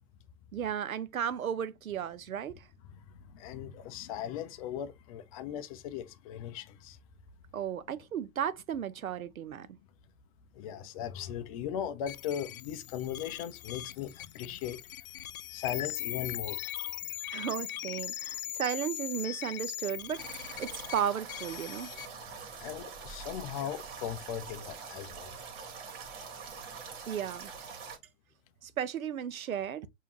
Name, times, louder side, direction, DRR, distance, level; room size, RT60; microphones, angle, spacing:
voice 1, 0.5-2.5 7.5-9.7 17.3-20.2 20.6-21.9 27.1-27.5 28.6-29.9, right 9 dB, 85° right, 0.7 m, -34 dB
voice 2, 2.9-7.0 10.6-14.8 15.5-16.6 22.6-25.4, left 9 dB, 30° left, 0.4 m, -38 dB
sound 1, 12.1-22.0, left 13 dB, 80° left, 0.5 m, -40 dB
sound 2, 20.2-28.0, right 5 dB, 45° right, 1.8 m, -44 dB
5.0 x 2.7 x 2.9 m
hypercardioid pair, 115°, 41 cm